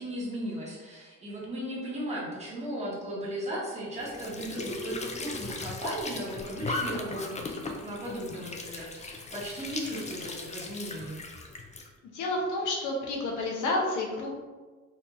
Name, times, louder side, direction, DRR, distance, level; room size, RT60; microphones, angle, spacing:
voice 1, 0.0-11.2, equal, 20° right, -6 dB, 1.4 m, -36 dB
Squeak / Sink (filling or washing) / Trickle dribble, 4.0-11.9, left 3 dB, 25° left, 0.4 m, -38 dB
voice 2, 12.1-14.3, left 2 dB, 80° left, -1 dB, 0.9 m, -30 dB
4.4 x 2.7 x 2.6 m, 1.4 s
cardioid pair, 90°, 30 cm